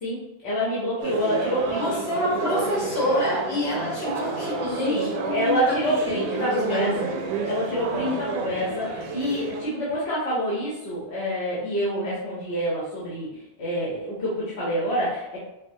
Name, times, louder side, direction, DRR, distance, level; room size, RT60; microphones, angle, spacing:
voice 1, 0.0-1.8 4.8-7.1 7.4-13.3 13.6-15.4, equal, 80° left, -8 dB, 1.2 m, -27 dB
sound 1, 1.0-9.6, right 4 dB, 90° right, 0.9 m, -30 dB
voice 2, 1.7-7.0 8.0-8.2, left 1 dB, 65° left, -5 dB, 1.5 m, -27 dB
4.7 x 2.1 x 2.7 m, 0.93 s
omnidirectional pair, 1.1 m